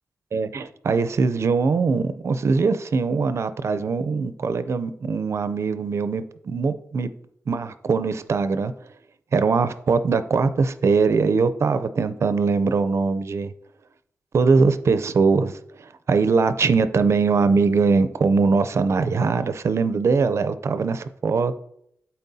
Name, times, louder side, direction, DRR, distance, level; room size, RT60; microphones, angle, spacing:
voice 1, 0.3-7.1 7.5-8.7 9.3-13.5 14.3-21.5, right 4 dB, 55° right, 12 dB, 0.4 m, -21 dB
12.0 x 4.3 x 2.7 m, 0.73 s
wide cardioid pair, 140°, 6 cm